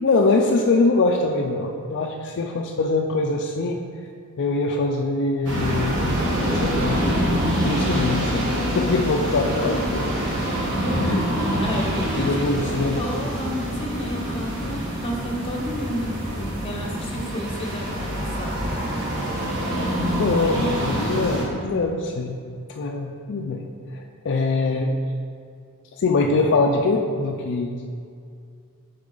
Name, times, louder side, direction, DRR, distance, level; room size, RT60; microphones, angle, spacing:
voice 1, 0.0-3.8 4.4-6.2 6.5-7.0 7.5-10.4 11.0-11.3 12.2-13.0 16.3-16.4 20.1-22.4 22.8-23.6 23.9-25.0 25.9-27.9, left 3 dB, 55° left, 2 dB, 0.4 m, -23 dB
sound 1, 5.4-21.4, equal, 55° right, 1.5 m, -25 dB
voice 2, 11.6-12.5 13.0-18.6, equal, 25° left, 0 dB, 1.0 m, -32 dB
7.1 x 5.5 x 3.8 m, 2.3 s
head